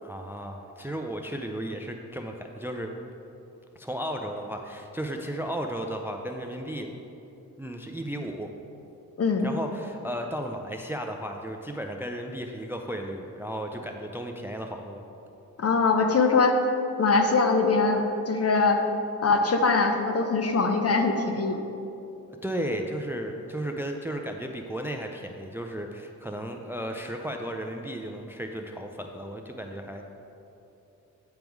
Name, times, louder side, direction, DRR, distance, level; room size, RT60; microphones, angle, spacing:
voice 1, 0.0-2.9 3.8-6.9 7.6-8.5 9.4-15.0 22.4-30.1, right 1 dB, 5° right, 4 dB, 0.4 m, -34 dB
voice 2, 9.2-9.5 15.6-16.6 17.0-18.8 19.2-21.6, left 4 dB, 40° left, 5 dB, 0.7 m, -22 dB
9.2 x 3.5 x 4.6 m, 2.8 s
cardioid pair, 65°, 37 cm